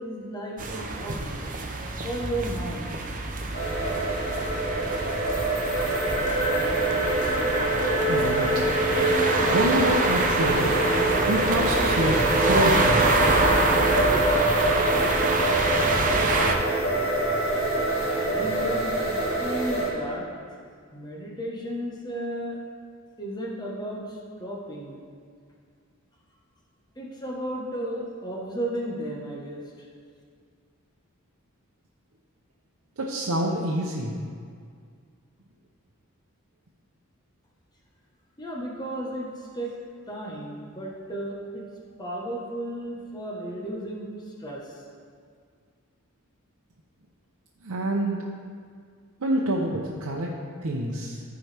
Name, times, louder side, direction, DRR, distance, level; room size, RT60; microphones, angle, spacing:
voice 1, 0.0-1.5 2.0-3.0 18.1-20.3 20.9-22.6 23.2-25.0 26.9-29.6 38.4-39.7 40.1-41.6 42.0-44.8, right 1 dB, 20° left, -3 dB, 1.2 m, -34 dB
sound 1, 0.6-16.5, right 2 dB, 40° right, 0.7 m, -26 dB
sound 2, 3.5-19.9, right 1 dB, 70° left, 1.9 m, -25 dB
voice 2, 8.1-8.5 9.4-10.7 11.3-13.1 33.0-34.2 47.6-48.2 49.2-51.2, right 1 dB, 80° right, -3 dB, 0.8 m, -27 dB
14.0 x 4.7 x 3.4 m, 2.1 s
head